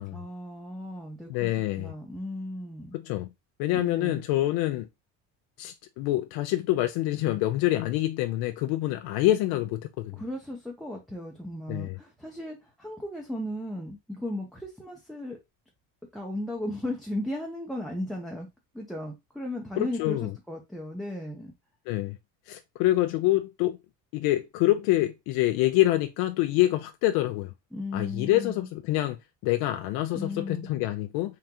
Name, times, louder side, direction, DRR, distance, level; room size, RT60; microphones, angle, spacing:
voice 1, 0.1-1.5 1.8-3.0 3.7-4.2 10.1-15.4 16.1-18.5 18.7-21.5 27.7-28.7 30.1-30.7, left 1 dB, ahead, 0.5 m, -36 dB
voice 2, 1.3-1.9 2.9-3.3 3.6-4.9 5.6-10.2 11.7-12.0 19.8-20.3 21.9-22.2 22.5-23.8 24.1-27.5 27.9-31.3, left 15 dB, 85° left, 0.5 m, -26 dB
3.8 x 3.4 x 2.8 m
cardioid pair, 150°, 36 cm